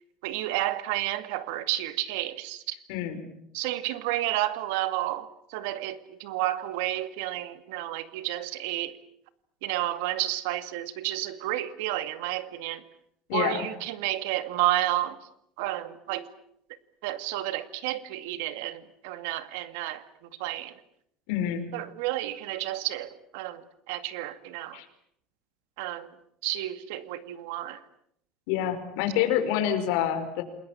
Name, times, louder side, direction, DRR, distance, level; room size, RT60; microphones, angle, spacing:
voice 1, 0.2-2.8 3.5-9.0 9.6-12.8 13.3-15.2 15.6-16.3 17.0-20.0 20.4-20.8 21.7-24.8 25.8-26.1 26.4-27.8, right 15 dB, 90° right, 2.1 m, -31 dB
voice 2, 13.3-13.6 21.3-21.7 24.7-24.8 28.5-30.4, left 10 dB, 70° left, 5.1 m, -27 dB
28.5 x 21.5 x 8.7 m
cardioid pair, 180°, 0 cm